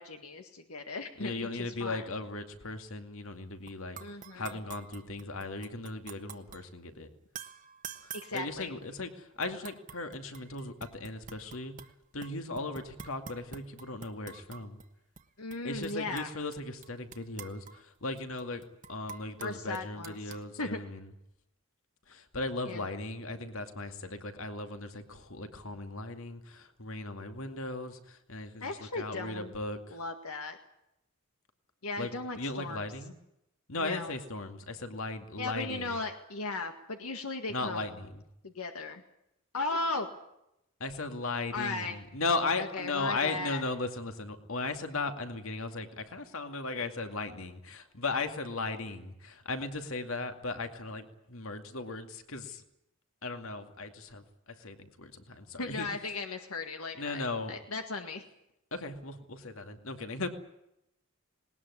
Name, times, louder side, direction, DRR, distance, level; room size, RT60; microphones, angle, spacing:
voice 1, 0.0-2.1 4.0-4.6 8.1-8.7 15.4-16.3 19.4-20.8 22.7-22.9 28.6-29.5 29.9-30.6 31.8-32.8 33.8-34.1 35.4-37.8 38.4-39.0 39.5-40.1 41.5-42.0 42.6-43.6 55.6-58.2, left 3 dB, 85° left, 5 dB, 1.9 m, -37 dB
voice 2, 1.2-7.1 8.0-11.7 12.1-14.8 15.6-18.6 18.9-21.1 22.1-30.0 32.0-33.1 33.7-36.0 37.5-38.2 40.8-52.6 53.2-55.9 57.0-57.6 58.7-60.3, left 3 dB, 70° left, 7 dB, 2.4 m, -37 dB
sound 1, 3.7-3.8 4.0-6.6 7.4-9.0 9.4-11.9 12.2-14.9 15.2-15.3 15.5-16.6 16.8-20.4, right 7 dB, 35° right, 1.3 m, -47 dB
20.0 x 19.5 x 9.8 m, 0.83 s
head